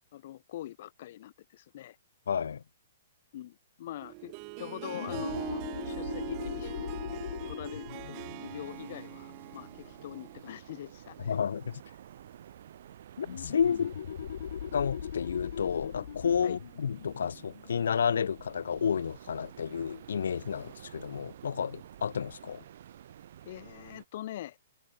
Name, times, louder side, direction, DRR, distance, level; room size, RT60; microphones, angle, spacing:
voice 1, 0.1-2.0 3.3-7.0 7.5-11.3 13.7-13.9 16.4-16.6 23.4-24.6, left 13 dB, 40° left, 2.8 m, -43 dB
voice 2, 2.3-2.6 11.3-11.8 13.2-13.9 14.7-22.6, left 7 dB, 80° left, 1.4 m, -31 dB
Harp, 4.0-10.5, right 40 dB or more, 25° right, 1.1 m, -42 dB
sound 1, 4.9-10.2 13.2-18.5, left 9 dB, 55° left, 1.6 m, -41 dB
sound 2, 7.9-24.1, right 10 dB, 50° right, 2.5 m, -51 dB
hypercardioid pair, 175°, 0 cm